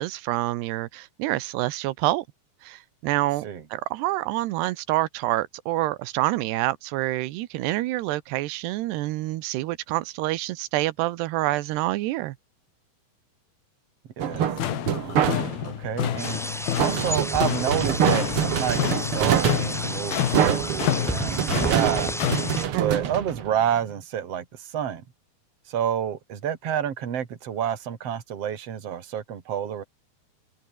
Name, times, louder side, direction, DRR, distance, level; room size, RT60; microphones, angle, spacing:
voice 1, 0.0-2.2 2.6-3.4 3.7-12.4 22.7-23.1, right 17 dB, 90° right, 3.1 m, -27 dB
voice 2, 14.2-14.5 14.9-15.3 15.6-22.4 22.7-25.0 25.7-29.8, right 9 dB, 40° right, 3.1 m, -29 dB
sound 1, 14.2-15.8 16.8-23.9, right 9 dB, 60° right, 1.5 m, -25 dB
sound 2, 14.3-22.6, left 11 dB, 70° left, 3.7 m, -29 dB
sound 3, 16.2-22.7, equal, ahead, 4.4 m, -33 dB
omnidirectional pair, 4.6 m